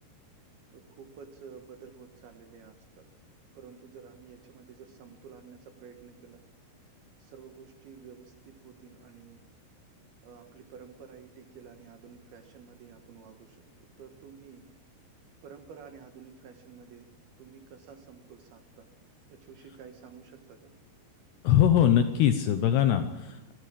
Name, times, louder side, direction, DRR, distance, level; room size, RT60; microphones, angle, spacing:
voice 1, 0.7-3.1 3.5-6.4 7.2-9.4 10.2-14.7 15.4-17.1 17.4-18.9 19.3-20.7, right 6 dB, 65° right, 7 dB, 2.7 m, -50 dB
voice 2, 21.4-23.5, left 10 dB, 75° left, 9 dB, 2.6 m, -22 dB
24.5 x 15.0 x 8.6 m, 0.94 s
omnidirectional pair, 5.9 m